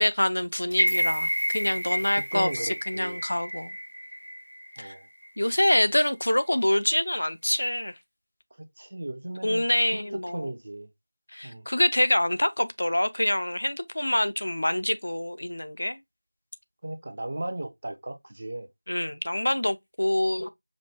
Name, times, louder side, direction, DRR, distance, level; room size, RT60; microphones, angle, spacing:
voice 1, 0.0-3.7 4.8-4.9 5.4-7.9 9.4-10.5 11.3-16.0 18.9-20.5, left 1 dB, 60° left, 0.4 m, -26 dB
sound 1, 0.7-4.8 5.2-5.3, equal, 90° right, 0.4 m, -29 dB
voice 2, 2.1-3.2 4.8-5.1 8.6-9.6 9.9-10.0 10.3-10.9 11.4-11.7 16.8-18.7, right 1 dB, 40° right, 0.6 m, -36 dB
5.0 x 2.2 x 3.0 m
figure-of-eight pair, 175°, 0 cm